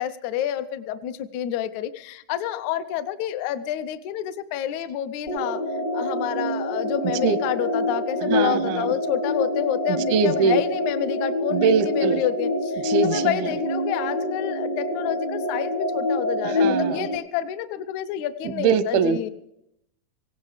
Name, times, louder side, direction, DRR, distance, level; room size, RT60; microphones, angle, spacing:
voice 1, 0.0-5.6 5.9-19.3, left 11 dB, 80° left, 11 dB, 1.7 m, -28 dB
sound 1, 5.3-17.2, left 1 dB, 55° left, 1.2 m, -26 dB
voice 2, 8.2-8.9 10.1-10.6 11.5-12.2 12.8-13.5 16.4-17.1 18.5-19.2, right 6 dB, 90° right, 15 dB, 2.6 m, -22 dB
18.0 x 17.5 x 3.3 m, 0.79 s
omnidirectional pair, 4.1 m